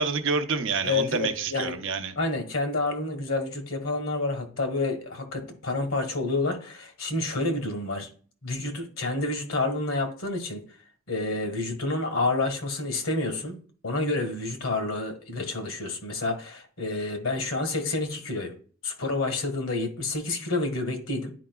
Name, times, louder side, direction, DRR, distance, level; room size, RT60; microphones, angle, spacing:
voice 1, 0.0-2.1, right 5 dB, 65° right, 0.7 m, -28 dB
voice 2, 0.8-1.8 2.2-8.1 8.4-10.6 11.1-13.6 13.8-18.5 18.8-21.3, left 2 dB, 80° left, 1.6 m, -29 dB
10.0 x 4.9 x 2.3 m
head